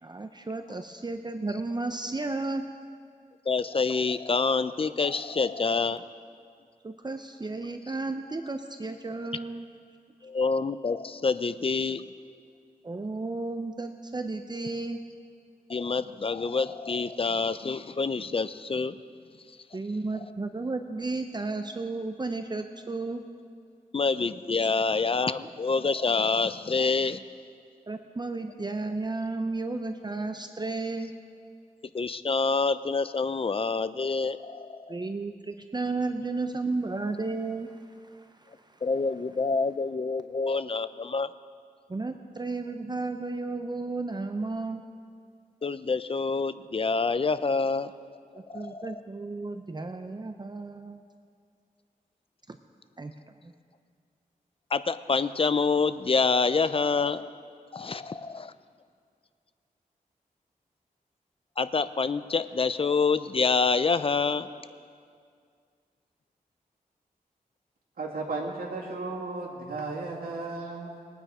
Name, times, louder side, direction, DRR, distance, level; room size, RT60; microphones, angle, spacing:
voice 1, 0.0-2.6 6.8-9.6 12.8-15.0 19.7-23.3 27.9-31.1 34.9-37.7 41.9-44.8 48.3-51.0 52.5-52.6 53.0-53.1, right 3 dB, 30° right, 7 dB, 0.6 m, -33 dB
voice 2, 3.5-6.0 10.2-12.0 15.7-19.0 23.9-27.2 31.9-35.0 38.8-41.3 45.6-47.9 48.5-48.9 54.7-57.2 57.7-58.0 61.6-64.5, left 4 dB, 40° left, 13 dB, 0.5 m, -27 dB
voice 3, 68.0-71.0, right 3 dB, 90° right, -4 dB, 2.3 m, -34 dB
20.5 x 9.2 x 4.9 m, 2.2 s
wide cardioid pair, 80°, 15 cm